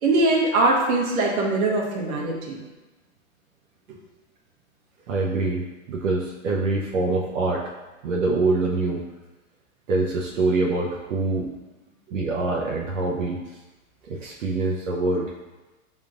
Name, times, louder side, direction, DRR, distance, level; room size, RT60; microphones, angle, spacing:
voice 1, 0.0-2.6 12.1-12.2, right 2 dB, 90° right, -3 dB, 1.4 m, -22 dB
voice 2, 5.1-7.6 8.0-9.0 9.9-11.5 12.1-13.4 14.1-15.3, right 3 dB, 60° right, -3 dB, 0.8 m, -24 dB
5.7 x 3.6 x 2.5 m, 1.1 s
hypercardioid pair, 155°, 42 cm